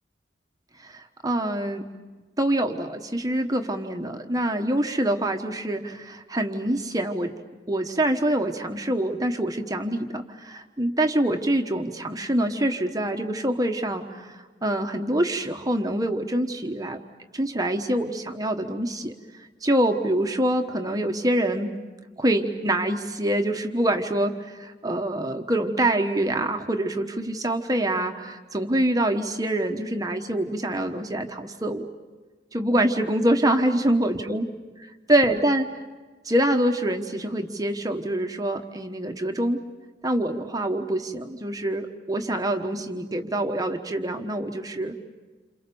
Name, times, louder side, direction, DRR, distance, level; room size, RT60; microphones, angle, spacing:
voice 1, 0.8-1.9 2.4-7.3 7.7-17.0 17.3-19.1 19.6-21.7 22.2-31.9 32.5-34.4 35.1-35.7 36.2-39.6 40.0-45.2, right 1 dB, 20° right, 4 dB, 1.2 m, -25 dB
29.0 x 27.5 x 7.0 m, 1.3 s
head